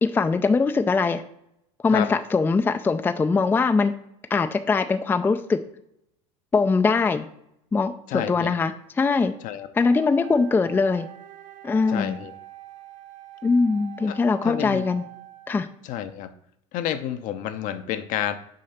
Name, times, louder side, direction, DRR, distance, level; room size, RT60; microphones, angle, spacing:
voice 1, 0.0-1.2 1.8-3.9 4.3-5.6 6.5-7.3 7.7-9.3 9.8-11.1 11.6-12.2 13.4-15.0 15.5-15.7, left 4 dB, 15° left, 9 dB, 0.4 m, -22 dB
voice 2, 8.1-8.5 9.4-9.7 11.9-12.3 14.1-14.2 14.4-14.9 15.8-16.3 16.7-18.4, left 11 dB, 55° left, 9 dB, 0.7 m, -29 dB
Wind instrument woodwind instrument, 9.8-15.7, right 15 dB, 90° right, 0.9 m, -45 dB
6.5 x 3.8 x 5.7 m, 0.76 s
supercardioid pair, 100°, 16 cm